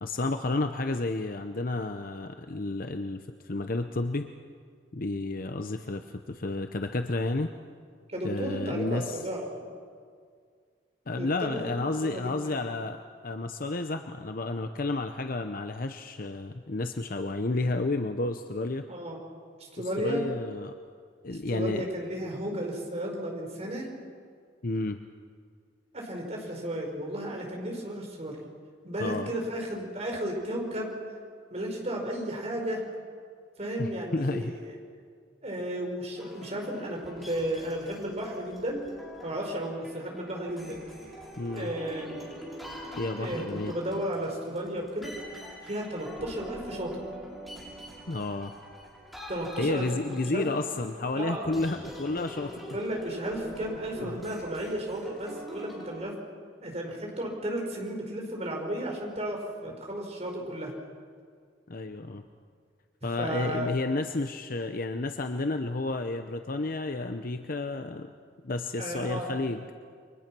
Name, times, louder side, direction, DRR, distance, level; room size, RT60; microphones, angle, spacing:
voice 1, 0.0-4.3 4.9-7.5 8.2-9.2 11.1-18.8 19.8-20.7 21.2-21.8 24.6-25.0 29.0-29.3 33.8-34.6 41.4-41.7 43.0-43.7 48.1-48.5 49.6-52.6 54.0-54.2 61.7-62.2 63.0-68.1 68.4-69.6, left 2 dB, 55° left, 7 dB, 0.8 m, -31 dB
voice 2, 8.1-9.6 11.2-11.6 12.0-12.3 18.9-19.2 19.6-20.2 21.3-23.9 25.9-28.5 28.8-30.9 31.5-32.9 33.6-34.7 35.4-38.8 39.2-40.8 41.5-42.3 43.2-45.1 45.6-47.0 49.3-50.4 51.1-51.6 52.5-56.1 56.6-60.7 63.2-64.0 68.8-69.4, right 1 dB, 40° right, 1 dB, 5.0 m, -34 dB
sound 1, 36.1-55.9, equal, ahead, 6.3 m, -44 dB
29.5 x 24.0 x 6.1 m, 2.1 s
head